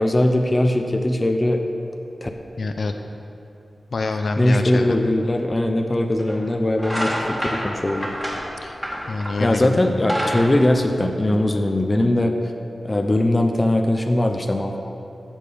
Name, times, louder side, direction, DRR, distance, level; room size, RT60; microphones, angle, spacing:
voice 1, 0.0-1.6 2.2-2.3 4.4-8.1 9.4-12.3 12.8-14.8, left 1 dB, 25° left, 4 dB, 0.7 m, -20 dB
voice 2, 2.6-2.9 3.9-5.0 8.6-8.8 9.1-10.0, left 3 dB, 60° left, 6 dB, 0.7 m, -26 dB
sound 1, 5.4-5.5 6.2-6.4 6.7-9.5 9.9-11.5, equal, 5° right, 2.3 m, -27 dB
15.0 x 7.2 x 5.1 m, 2.8 s
wide cardioid pair, 130°, 0 cm